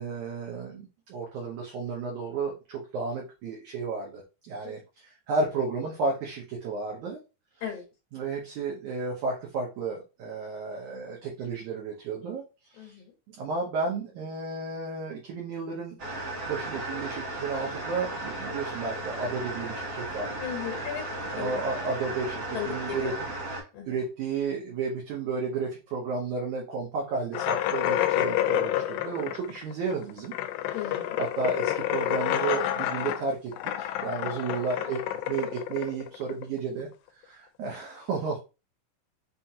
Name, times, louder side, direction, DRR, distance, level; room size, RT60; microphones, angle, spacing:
voice 1, 0.0-4.8 5.3-7.2 8.1-12.4 12.8-12.9 13.4-16.0 16.5-20.3 21.3-23.2 23.5-30.3 30.7-33.5 33.8-36.9 37.3-38.4, right 4 dB, 75° right, -1 dB, 1.9 m, -32 dB
voice 2, 12.8-13.1 20.4-21.0 21.4-21.6 22.5-23.1 23.7-23.9 30.7-31.2 34.5-34.6, left 9 dB, 65° left, 0 dB, 2.2 m, -36 dB
sound 1, 16.0-23.6, right 2 dB, 50° right, 2.2 m, -35 dB
sound 2, 27.3-36.7, left 13 dB, 85° left, 2.3 m, -29 dB
5.6 x 2.5 x 2.7 m, 0.30 s
omnidirectional pair, 4.0 m